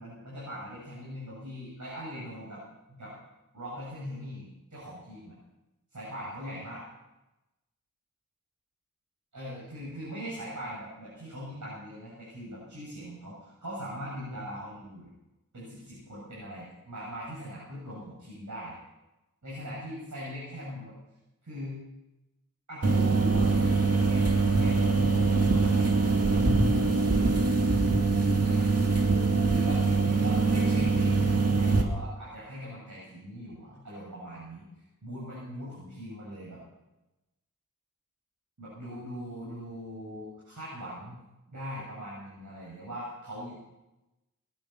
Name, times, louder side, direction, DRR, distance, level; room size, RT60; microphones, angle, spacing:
voice 1, 0.0-2.6 2.9-3.1 3.5-5.3 5.9-6.8 9.3-15.1 15.5-18.8 19.4-20.9 21.4-21.8 22.7-26.1 28.4-28.8 29.5-34.7 35.0-36.6 38.6-41.2 41.5-43.6, equal, 65° right, -7 dB, 7.6 m, -40 dB
sound 1, 22.8-31.8, right 4 dB, 50° right, 2.3 m, -23 dB
20.0 x 11.0 x 5.9 m, 0.98 s
cardioid pair, 40°, 32 cm